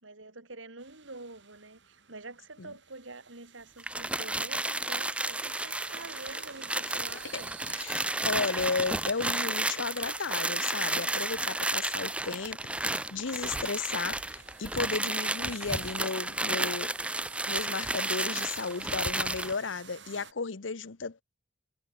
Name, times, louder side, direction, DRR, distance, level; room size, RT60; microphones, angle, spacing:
voice 1, 0.0-7.5, right 3 dB, 90° right, 4.5 m, -47 dB
sound 1, 0.8-20.3, right 8 dB, 65° right, 7.8 m, -52 dB
sound 2, 3.8-19.6, right 2 dB, 5° right, 0.8 m, -32 dB
voice 2, 7.7-16.9 17.5-21.2, left 4 dB, 80° left, 1.0 m, -34 dB
head